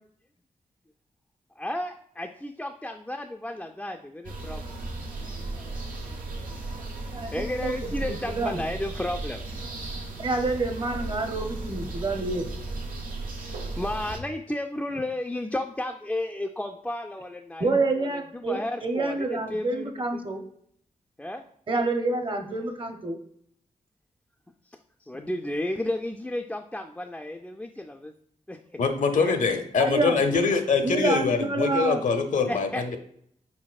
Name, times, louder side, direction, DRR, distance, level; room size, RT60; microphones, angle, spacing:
voice 1, 1.6-4.8 5.3-6.1 6.8-6.9 7.3-9.4 10.1-10.3 13.5-20.2 21.2-21.5 24.7-28.1 28.5-28.8 29.2-29.6 32.5-33.0, left 1 dB, 5° left, 4 dB, 0.3 m, -33 dB
sound 1, 4.2-14.2, right 2 dB, 80° right, 0.8 m, -35 dB
voice 2, 7.1-7.7 8.0-8.6 10.2-12.5 17.6-20.4 21.7-23.2 29.8-30.2 30.8-32.0, right 2 dB, 35° right, 5 dB, 0.7 m, -28 dB
voice 3, 28.8-33.0, left 4 dB, 65° left, 7 dB, 0.6 m, -24 dB
4.1 x 4.1 x 2.3 m, 0.68 s
cardioid pair, 55°, 14 cm